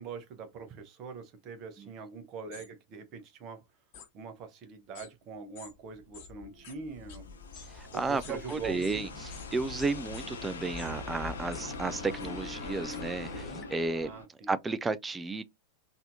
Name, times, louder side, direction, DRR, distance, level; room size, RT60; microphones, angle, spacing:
voice 1, 0.0-3.6 4.1-7.2 7.9-9.1 14.0-14.5, right 5 dB, 40° right, 1.0 m, -43 dB
sound 1, 2.5-2.7 3.9-4.1 4.9-5.1 5.6-5.7 6.1-6.3 6.6-6.7 7.1-7.2 7.5-9.0 9.3-9.5 9.8-10.3 10.8-10.9 11.5-11.6 12.2-12.3 12.9-13.0, left 7 dB, 50° left, 1.0 m, -49 dB
sound 2, 5.7-13.7, left 4 dB, 15° left, 1.0 m, -47 dB
sound 3, 6.0-14.3, left 3 dB, 70° left, 0.6 m, -43 dB
voice 2, 7.7-8.2 8.5-9.1 9.5-14.1 14.5-15.4, right 3 dB, 15° right, 0.3 m, -32 dB
4.0 x 2.7 x 2.6 m
figure-of-eight pair, 90°, 0 cm